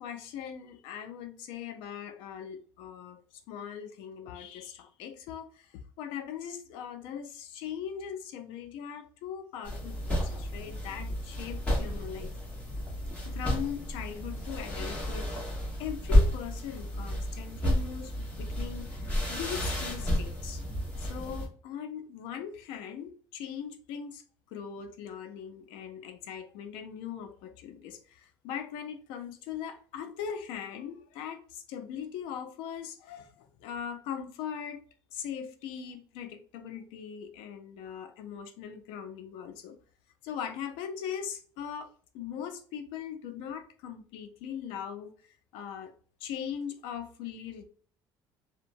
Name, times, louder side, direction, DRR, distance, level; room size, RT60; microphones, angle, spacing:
voice 1, 0.0-3.2 3.5-12.3 13.1-15.3 15.8-20.6 21.0-24.2 24.5-34.8 35.1-39.8 40.2-41.9 42.1-45.1 45.5-45.9 46.2-47.6, left 8 dB, 80° left, 0.5 m, -40 dB
sound 1, 9.6-21.5, equal, 15° left, 1.2 m, -31 dB
2.7 x 2.1 x 2.5 m
cardioid pair, 115°, 9 cm